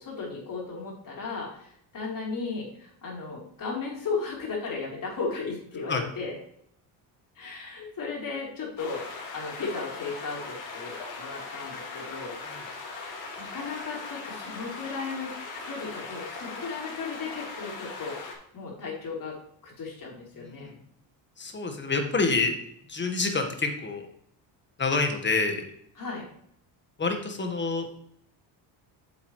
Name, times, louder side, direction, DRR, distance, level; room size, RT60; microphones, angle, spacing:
voice 1, 0.0-6.3 7.4-12.3 13.4-15.3 15.6-18.2 18.5-19.4 19.6-20.8 26.0-26.3, left 4 dB, 45° left, -2 dB, 3.8 m, -35 dB
sound 1, 8.8-18.3, left 3 dB, 75° left, 2.9 m, -39 dB
voice 2, 20.4-20.7 21.4-22.5 22.9-24.0 24.8-25.6 27.0-27.9, left 3 dB, 25° left, 5 dB, 1.6 m, -27 dB
8.9 x 7.1 x 3.3 m, 0.67 s
cardioid pair, 120°, 46 cm